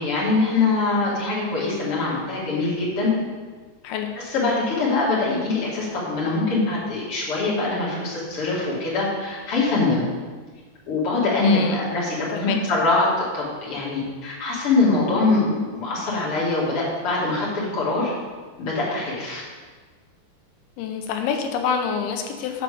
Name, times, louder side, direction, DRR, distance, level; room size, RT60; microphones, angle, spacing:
voice 1, 0.0-3.1 4.3-10.0 10.9-18.1 18.6-19.4, left 3 dB, 40° left, -6 dB, 2.5 m, -23 dB
voice 2, 11.4-11.9 12.3-12.6 20.8-22.6, left 7 dB, 85° left, 4 dB, 3.1 m, -27 dB
7.2 x 6.2 x 6.9 m, 1.4 s
omnidirectional pair, 5.3 m